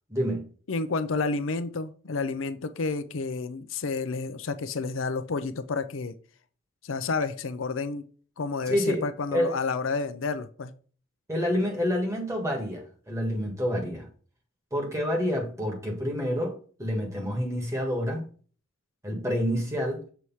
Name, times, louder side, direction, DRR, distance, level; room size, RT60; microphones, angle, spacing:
voice 1, 0.1-0.5 8.7-9.0 9.3-9.5 11.3-14.1 14.7-18.2 19.0-20.1, equal, 15° right, 1.8 m, -28 dB
voice 2, 0.7-6.1 6.8-8.0 8.4-10.7, left 4 dB, 80° left, 0.6 m, -30 dB
6.8 x 3.2 x 5.6 m
head